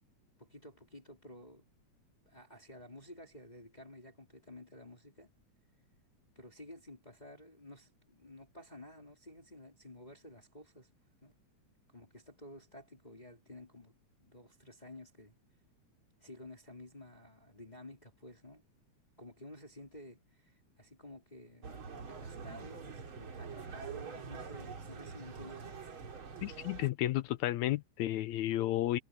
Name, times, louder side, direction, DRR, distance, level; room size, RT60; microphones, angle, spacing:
voice 1, 0.4-1.7 2.3-5.3 6.4-10.9 11.2-11.3 11.9-13.9 14.2-15.3 16.2-18.6 19.2-25.7, left 1 dB, 15° left, 3.6 m, -52 dB
sound 1, 21.6-26.9, right 5 dB, 45° right, 2.9 m, -45 dB
voice 2, 26.4-29.0, left 14 dB, 75° left, 1.9 m, -32 dB
omnidirectional pair, 3.5 m